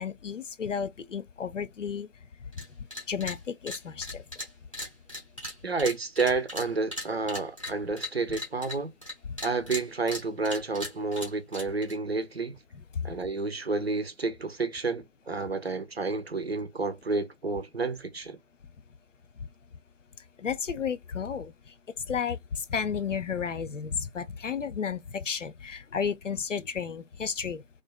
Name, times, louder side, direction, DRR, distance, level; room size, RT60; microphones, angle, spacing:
voice 1, 0.0-2.1 2.5-4.2 9.3-9.4 12.9-13.1 20.4-21.7 22.0-27.6, left 6 dB, 75° left, 0.5 m, -33 dB
sound 1, 2.5-2.6 2.9-3.4 3.7-9.1 9.4-11.9, left 1 dB, 25° left, 0.8 m, -37 dB
voice 2, 5.6-8.9 9.4-12.6 13.0-18.4, right 3 dB, 55° right, 0.5 m, -30 dB
2.4 x 2.3 x 2.2 m
figure-of-eight pair, 165°, 38 cm